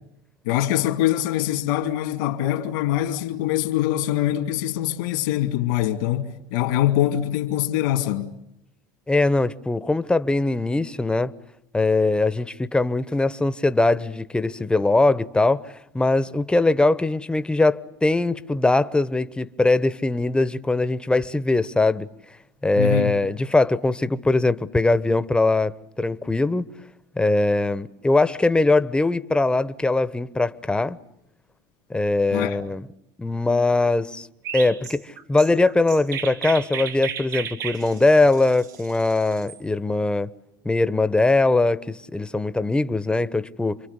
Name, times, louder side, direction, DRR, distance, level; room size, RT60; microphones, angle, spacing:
voice 1, 0.4-8.4 22.8-23.2 32.3-32.6, left 13 dB, 80° left, 2.6 m, -23 dB
voice 2, 9.1-11.3 11.7-22.1 22.6-26.6 27.2-31.0 31.9-32.8 33.2-34.3 34.5-40.3 40.6-43.8, left 2 dB, 10° left, 1.0 m, -21 dB
Chirp tweet, 34.4-39.6, right 8 dB, 90° right, 3.3 m, -34 dB
29.0 x 23.5 x 8.2 m
supercardioid pair, 100°, 10 cm